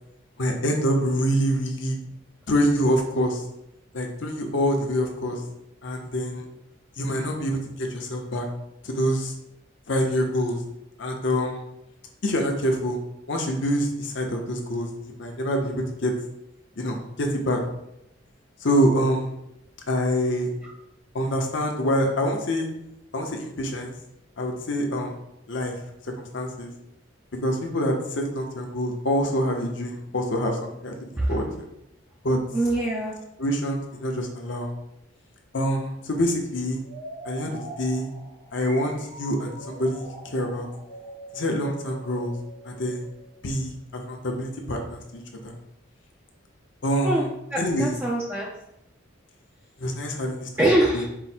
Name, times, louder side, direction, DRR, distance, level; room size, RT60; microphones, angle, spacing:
voice 1, 0.4-2.0 2.5-3.4 3.9-5.4 5.8-6.4 7.0-8.5 8.8-9.3 9.9-10.6 11.0-11.6 12.2-13.0 13.3-16.1 16.8-17.6 18.6-19.3 19.9-20.5 21.1-22.7 23.1-23.9 24.4-25.1 25.5-25.8 26.3-26.7 27.4-31.4 32.2-32.4 33.4-34.7 35.5-36.8 37.2-38.1 38.5-40.7 41.3-42.3 42.6-43.0 43.4-45.5 46.8-47.3 47.6-47.9 49.8-50.7, equal, 60° left, 2 dB, 0.7 m, -26 dB
voice 2, 32.5-33.1 47.0-47.2 47.5-48.5 50.6-51.1, right 1 dB, 10° right, -4 dB, 0.4 m, -23 dB
sound 1, 36.8-43.5, right 1 dB, 70° right, 1.1 m, -43 dB
4.6 x 2.1 x 4.2 m, 0.83 s
head